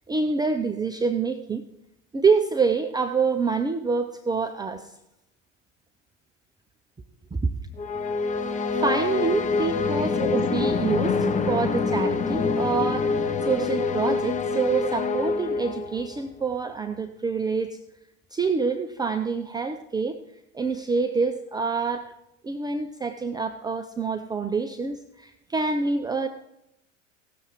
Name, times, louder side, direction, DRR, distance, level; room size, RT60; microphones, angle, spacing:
voice 1, 0.1-1.6 2.1-4.9 7.3-7.4 8.5-17.8 18.3-20.2 20.5-22.1 22.4-26.3, right 4 dB, 10° right, 6 dB, 0.6 m, -26 dB
sound 1, 7.8-16.2, left 4 dB, 20° left, 0.9 m, -26 dB
16.5 x 7.0 x 4.7 m, 0.84 s
figure-of-eight pair, 85°, 39 cm